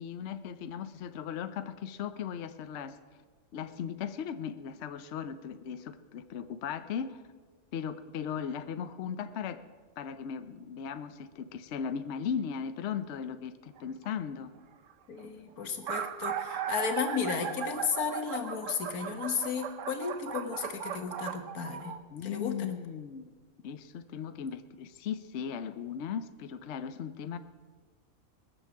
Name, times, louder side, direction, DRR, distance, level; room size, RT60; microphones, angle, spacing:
voice 1, 0.0-3.0 3.5-7.2 7.7-9.6 10.0-14.5 22.1-23.3 23.6-27.4, left 7 dB, 60° left, 10 dB, 0.9 m, -37 dB
sound 1, 13.8-14.1 14.9-15.0 15.2-15.3 15.6-22.0, right 7 dB, 65° right, 1.1 m, -37 dB
voice 2, 15.1-22.0 22.2-22.8, left 6 dB, 85° left, 7 dB, 1.8 m, -34 dB
21.0 x 7.0 x 7.2 m, 1.4 s
omnidirectional pair, 1.5 m